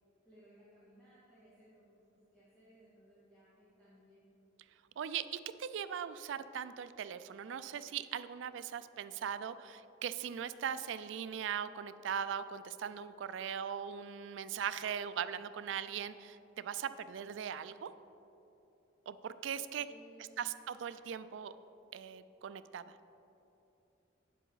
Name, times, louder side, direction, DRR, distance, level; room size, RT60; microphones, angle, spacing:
voice 1, 0.2-4.3 19.7-20.6, right 1 dB, 5° left, -12 dB, 1.9 m, -62 dB
voice 2, 5.0-17.9 19.1-19.9 20.4-21.5 21.9-22.8, right 8 dB, 70° right, 13 dB, 0.3 m, -40 dB
8.8 x 7.4 x 3.9 m, 2.9 s
head